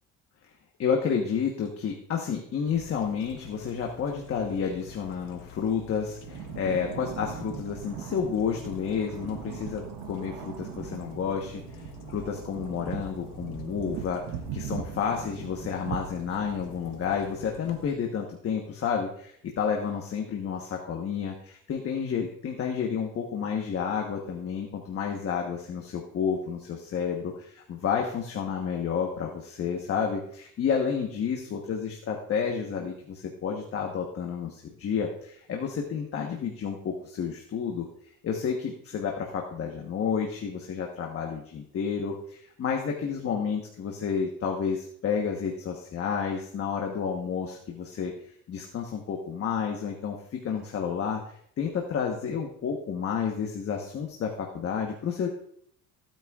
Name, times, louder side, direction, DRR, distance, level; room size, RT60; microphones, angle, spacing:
voice 1, 0.8-11.8 12.1-14.2 14.5-37.9 38.2-48.1 48.5-55.3, left 6 dB, 40° left, 1 dB, 1.2 m, -30 dB
sound 1, 2.7-17.9, left 5 dB, 75° left, 1.2 m, -47 dB
sound 2, 6.2-17.1, right 10 dB, 90° right, 0.9 m, -40 dB
15.5 x 9.0 x 2.4 m, 0.66 s
cardioid pair, 145°, 34 cm